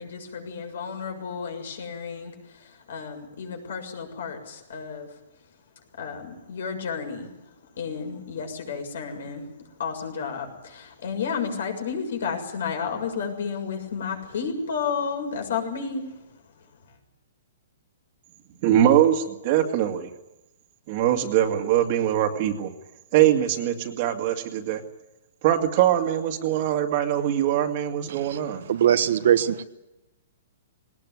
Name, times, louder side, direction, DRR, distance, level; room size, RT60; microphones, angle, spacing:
voice 1, 0.0-5.1 6.0-7.3 7.8-9.5 9.8-16.2, left 6 dB, 70° left, 5 dB, 6.9 m, -32 dB
voice 2, 18.6-20.1 20.9-22.7 23.1-24.8 25.4-28.6, right 11 dB, 35° right, 5 dB, 2.2 m, -22 dB
voice 3, 28.7-29.6, right 10 dB, 60° right, 11 dB, 1.3 m, -21 dB
20.5 x 19.0 x 9.6 m, 0.95 s
hypercardioid pair, 160°, 0 cm